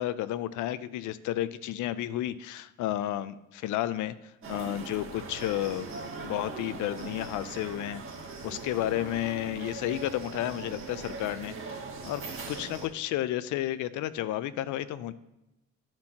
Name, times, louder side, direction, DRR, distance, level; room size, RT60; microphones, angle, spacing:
voice 1, 0.0-5.9 6.2-8.0 8.4-11.8 12.0-15.1, left 13 dB, 80° left, 15 dB, 0.5 m, -32 dB
sound 1, 4.4-12.9, right 4 dB, 45° right, 1.7 m, -40 dB
12.0 x 4.4 x 2.8 m, 0.95 s
cardioid pair, 90°, 30 cm